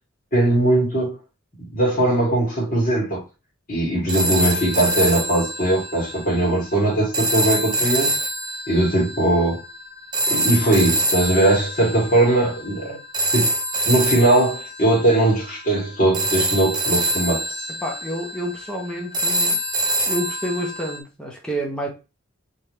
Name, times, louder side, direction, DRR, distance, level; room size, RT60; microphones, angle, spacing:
voice 1, 0.3-1.1 1.7-3.2 3.7-8.2 8.7-9.6 10.3-13.0 13.3-13.5 13.8-17.4, right 1 dB, 40° left, 2.9 m, -20 dB
sound 1, 4.1-21.0, right 1 dB, 20° right, 0.7 m, -25 dB
voice 2, 17.8-19.6 20.1-21.9, equal, 5° left, 1.1 m, -29 dB
4.4 x 3.6 x 3.3 m
head